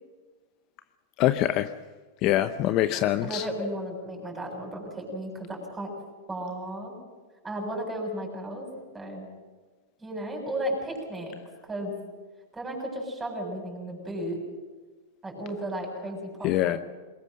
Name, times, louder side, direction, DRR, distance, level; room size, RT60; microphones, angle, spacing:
voice 1, 1.2-1.7 2.2-3.4 16.4-16.8, left 13 dB, 40° left, 11 dB, 0.7 m, -24 dB
voice 2, 3.2-5.9 6.3-6.9 7.4-8.7 8.9-9.3 10.0-11.3 11.6-11.9 12.5-14.4 15.2-16.8, right 1 dB, 15° right, 1 dB, 6.9 m, -34 dB
23.0 x 20.5 x 6.5 m, 1.4 s
hypercardioid pair, 140°, 0 cm